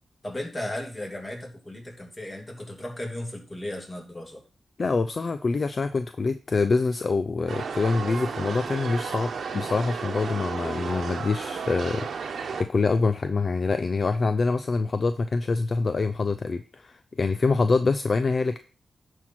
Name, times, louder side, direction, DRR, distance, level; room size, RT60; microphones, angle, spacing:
voice 1, 0.2-4.4, left 1 dB, 25° left, 1 dB, 3.0 m, -35 dB
voice 2, 4.8-18.6, left 4 dB, 50° left, 10 dB, 0.6 m, -25 dB
sound 1, 7.5-12.6, right 5 dB, 75° right, 1.0 m, -33 dB
10.5 x 4.6 x 5.8 m, 0.36 s
cardioid pair, 85°, 0 cm